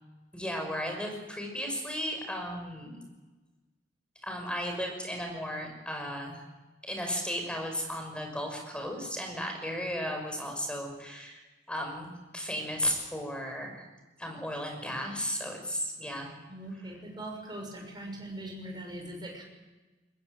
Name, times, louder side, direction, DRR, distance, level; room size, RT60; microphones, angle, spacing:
voice 1, 0.3-3.0 4.2-6.4 6.8-11.4 11.7-13.8 14.2-16.3, equal, 5° left, 2 dB, 5.7 m, -35 dB
voice 2, 16.5-19.4, right 1 dB, 25° right, 1 dB, 6.3 m, -41 dB
23.5 x 19.5 x 8.0 m, 1.2 s
head